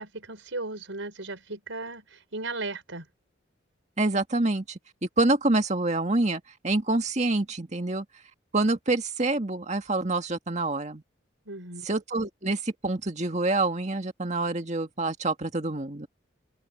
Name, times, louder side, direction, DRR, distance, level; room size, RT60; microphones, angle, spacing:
voice 1, 0.0-3.1 11.4-11.9, right 2 dB, 85° right, 4.8 m, -36 dB
voice 2, 4.0-8.1 8.5-11.0 11.8-16.1, right 2 dB, 35° right, 1.8 m, -27 dB
open air
head